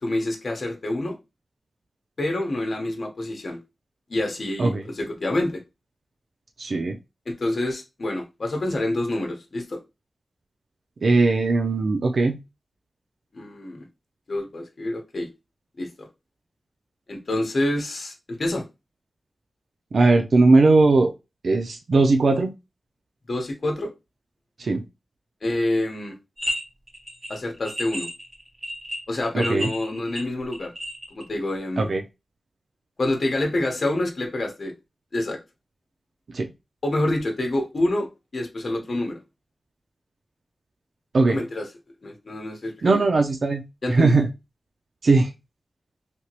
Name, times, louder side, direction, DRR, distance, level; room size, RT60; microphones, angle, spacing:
voice 1, 0.0-1.2 2.2-3.6 4.1-5.6 7.3-9.8 13.3-13.8 14.3-15.3 15.8-16.1 17.1-18.6 23.3-23.9 25.4-26.1 27.3-28.1 29.1-30.7 31.1-31.9 33.0-34.7 35.1-35.4 36.8-39.2 41.3-41.7 42.0-43.0 43.8-44.1, left 1 dB, 55° left, 1.0 m, -27 dB
voice 2, 6.6-7.0 11.0-12.4 19.9-21.1 21.4-22.5 24.6-24.8 29.3-29.7 31.8-32.0 36.3-36.5 41.1-41.4 42.8-43.6 43.9-44.3 45.0-45.3, right 3 dB, 70° right, 0.5 m, -19 dB
sound 1, 26.4-26.6 26.9-31.2, equal, 35° right, 2.0 m, -32 dB
3.3 x 2.8 x 2.9 m
wide cardioid pair, 100°, 0 cm